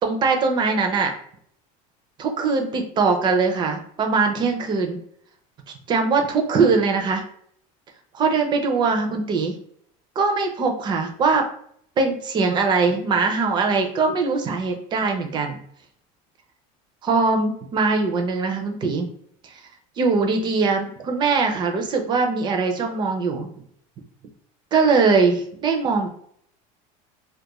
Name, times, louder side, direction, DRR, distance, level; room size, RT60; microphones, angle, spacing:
voice 1, 0.0-1.1 2.2-5.0 5.9-7.2 8.1-9.5 10.2-11.5 12.0-15.6 17.0-19.1 20.0-23.5 24.7-26.1, right 4 dB, 25° right, 4 dB, 0.4 m, -21 dB
2.3 x 2.1 x 2.9 m, 0.64 s
supercardioid pair, 150°, 18 cm